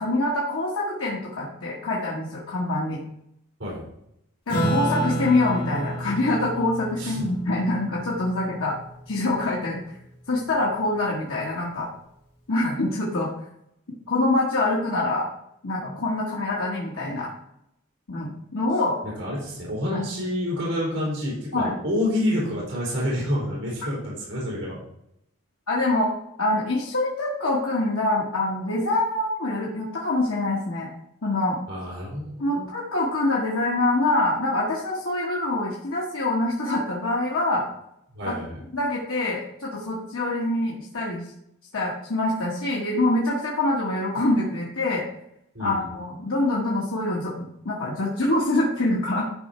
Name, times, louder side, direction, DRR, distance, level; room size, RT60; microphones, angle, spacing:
voice 1, 0.0-3.0 4.5-8.8 9.1-9.8 10.3-11.9 12.5-13.3 14.1-15.3 15.6-17.3 18.1-19.0 19.9-20.0 21.5-21.7 25.7-26.1 26.4-30.9 31.2-31.6 32.4-37.7 38.3-38.4 38.7-41.2 41.7-45.0 45.6-49.2, left 2 dB, 75° left, -5 dB, 1.6 m, -25 dB
Acoustic guitar / Strum, 4.5-9.3, equal, 50° left, 3.8 m, -30 dB
voice 2, 19.0-24.8 31.7-32.7 38.1-38.6 45.5-45.9, left 1 dB, 60° right, -5 dB, 4.0 m, -28 dB
11.5 x 4.9 x 4.4 m, 0.77 s
head